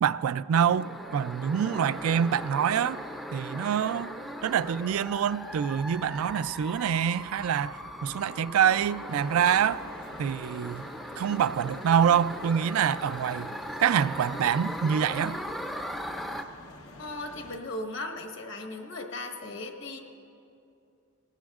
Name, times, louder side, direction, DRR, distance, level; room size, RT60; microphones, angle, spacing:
voice 1, 0.0-3.0 3.3-4.1 4.4-9.8 10.2-10.9 11.2-13.5 13.8-15.4, right 8 dB, 80° right, 0.3 m, -26 dB
sound 1, 0.5-16.4, equal, ahead, 0.4 m, -39 dB
sound 2, 9.2-17.6, left 2 dB, 85° left, 0.9 m, -49 dB
voice 2, 17.0-20.0, left 2 dB, 60° left, 1.2 m, -37 dB
19.5 x 17.5 x 2.4 m
head